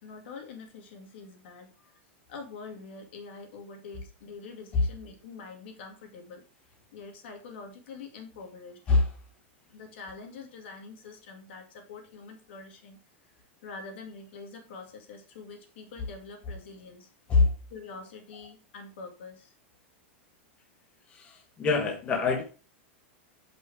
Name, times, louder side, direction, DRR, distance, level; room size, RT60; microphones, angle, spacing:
voice 1, 0.0-1.7 2.3-6.4 6.9-8.8 9.7-13.0 13.6-17.1 17.7-19.5, left 4 dB, 65° left, 2 dB, 2.2 m, -45 dB
voice 2, 21.1-22.4, left 4 dB, 20° left, 2 dB, 0.9 m, -24 dB
6.1 x 5.5 x 4.6 m, 0.34 s
supercardioid pair, 170°, 6 cm